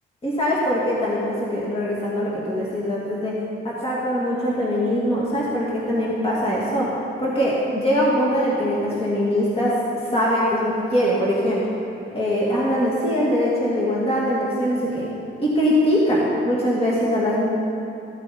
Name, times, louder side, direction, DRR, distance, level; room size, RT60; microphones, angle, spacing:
voice 1, 0.2-3.3 3.6-6.9 7.2-11.6 12.1-15.1 15.4-17.5, equal, 30° left, -6 dB, 2.3 m, -22 dB
15.0 x 8.9 x 4.3 m, 2.7 s
cardioid pair, 90°, 20 cm